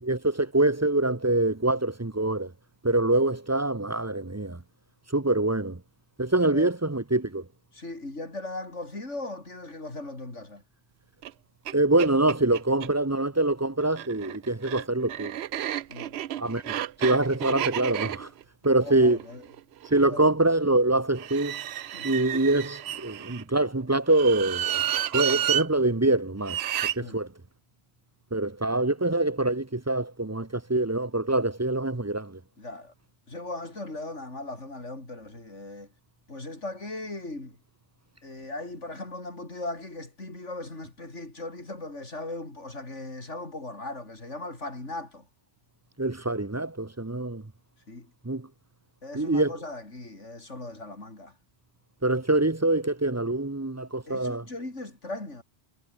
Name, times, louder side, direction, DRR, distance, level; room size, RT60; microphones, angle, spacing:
voice 1, 0.0-2.5 2.8-4.6 5.1-5.8 6.2-7.4 11.7-15.3 16.4-18.3 18.6-19.2 19.9-21.6 22.0-26.6 27.0-27.3 28.3-32.4 46.0-47.4 48.2-48.5 49.1-49.5 52.0-54.4, right 2 dB, 15° right, 0.9 m, -25 dB
voice 2, 7.7-10.6 15.9-16.2 18.8-19.4 20.1-20.3 21.9-22.1 27.0-27.2 32.6-32.9 33.3-35.9 36.3-37.6 38.2-45.3 47.9-48.1 49.0-51.3 54.1-55.4, left 2 dB, 80° left, 5.7 m, -38 dB
sound 1, 11.2-11.3 11.7-11.8 12.0-12.9 13.8-20.0 21.2-23.4 24.1-25.7 26.4-27.0, right 11 dB, 65° right, 0.9 m, -31 dB
omnidirectional pair, 1.2 m